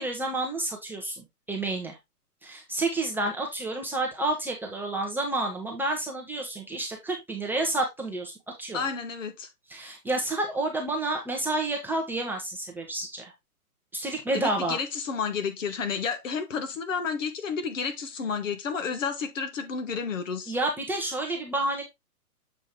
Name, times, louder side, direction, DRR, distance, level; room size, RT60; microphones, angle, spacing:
voice 1, 0.0-2.0 2.4-8.3 8.6-8.8 9.7-13.3 13.9-14.8 20.5-21.8, right 2 dB, 5° right, 0.8 m, -30 dB
voice 2, 8.7-9.5 14.3-20.6, left 5 dB, 55° left, 1.7 m, -31 dB
7.4 x 5.0 x 3.6 m
figure-of-eight pair, 120°, 45 cm